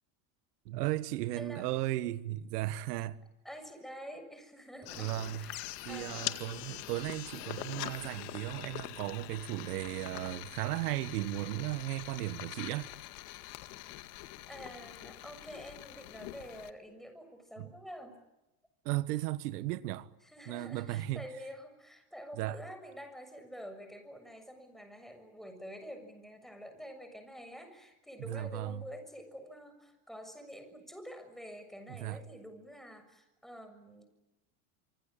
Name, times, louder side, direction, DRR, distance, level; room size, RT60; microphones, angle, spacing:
voice 1, 0.6-3.2 4.9-5.5 5.8-12.9 17.6-17.7 18.8-20.1 20.5-21.2 22.4-22.6 28.2-28.8 31.9-32.2, right 15 dB, 85° right, 1.5 m, -35 dB
voice 2, 1.4-1.7 3.4-6.4 14.5-18.2 20.2-34.0, equal, ahead, 6.8 m, -48 dB
sound 1, 4.9-16.7, left 17 dB, 75° left, 2.1 m, -44 dB
26.5 x 25.5 x 9.0 m
supercardioid pair, 120°, 46 cm